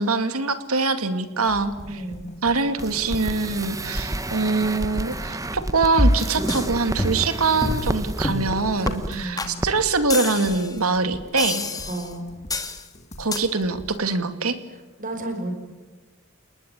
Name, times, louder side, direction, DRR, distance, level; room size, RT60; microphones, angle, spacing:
voice 1, 0.0-2.0 2.4-11.6 13.2-14.6, right 3 dB, 90° right, 10 dB, 2.3 m, -24 dB
sound 1, 1.4-14.0, left 1 dB, 35° left, 2.0 m, -44 dB
voice 2, 1.8-2.3 9.1-9.5 11.9-12.3 15.0-15.5, right 1 dB, 40° right, 6 dB, 5.5 m, -32 dB
sound 2, 2.8-9.1 9.4-9.7 10.0-10.1, right 1 dB, 15° right, 1.2 m, -30 dB
sound 3, 6.0-6.7 7.0-7.3 7.6-7.9 8.2-8.5 8.9-9.0 9.4-9.5 10.1-10.7 11.4-12.1 12.5-12.8 13.3-13.4, left 1 dB, 15° left, 2.3 m, -25 dB
30.0 x 20.0 x 8.9 m, 1.2 s
head